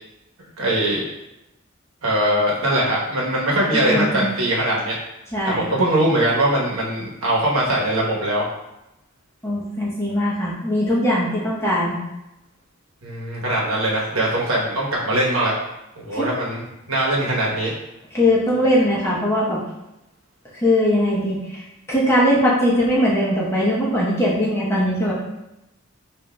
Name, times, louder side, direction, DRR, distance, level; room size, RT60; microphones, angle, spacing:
voice 1, 0.6-1.0 2.0-4.9 5.5-8.5 13.0-15.5 16.0-17.7, right 1 dB, 85° right, -4 dB, 1.1 m, -21 dB
voice 2, 3.7-4.3 5.3-5.7 9.4-12.0 16.1-16.3 18.1-19.6 20.6-21.6 21.9-25.1, equal, 15° left, -7 dB, 0.9 m, -20 dB
5.9 x 2.5 x 2.3 m, 0.92 s
head